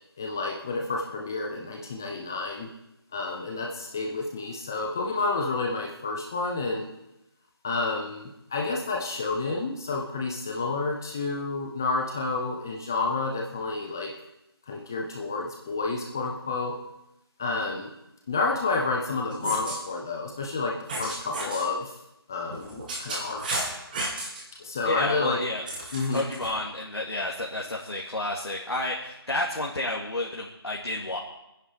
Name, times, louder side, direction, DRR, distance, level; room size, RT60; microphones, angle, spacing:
voice 1, 0.2-2.7 3.1-6.9 7.6-14.1 14.7-16.7 17.4-17.9 18.3-20.7 21.0-21.9 22.3-23.7 24.6-25.4 25.9-26.2, left 3 dB, 10° left, 0 dB, 0.5 m, -30 dB
sound 1, 19.3-19.8 20.9-21.7 22.5-24.4 25.7-26.5, right 2 dB, 20° right, 2.3 m, -33 dB
voice 2, 24.8-25.6 26.1-31.2, left 2 dB, 80° left, -2 dB, 2.5 m, -30 dB
23.5 x 10.0 x 5.0 m, 0.90 s
figure-of-eight pair, 170°, 13 cm